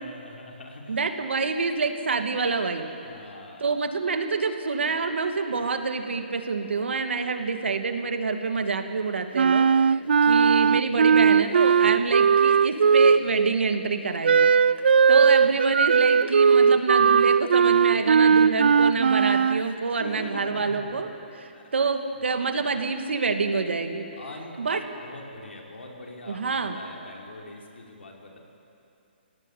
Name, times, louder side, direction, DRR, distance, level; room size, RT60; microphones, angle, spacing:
voice 1, 0.0-1.0 1.5-1.6 3.0-3.7 19.8-21.0 21.5-22.1 22.6-22.7 24.2-28.4, left 2 dB, 85° left, 0 dB, 5.3 m, -43 dB
voice 2, 0.9-2.9 3.6-14.5 15.1-24.1 24.6-24.8 26.3-26.8, right 4 dB, 90° right, 6 dB, 2.5 m, -27 dB
Wind instrument woodwind instrument, 9.4-13.5 14.2-19.6, right 6 dB, 60° right, 0.5 m, -18 dB
28.5 x 17.5 x 8.6 m, 2.7 s
hypercardioid pair, 175°, 6 cm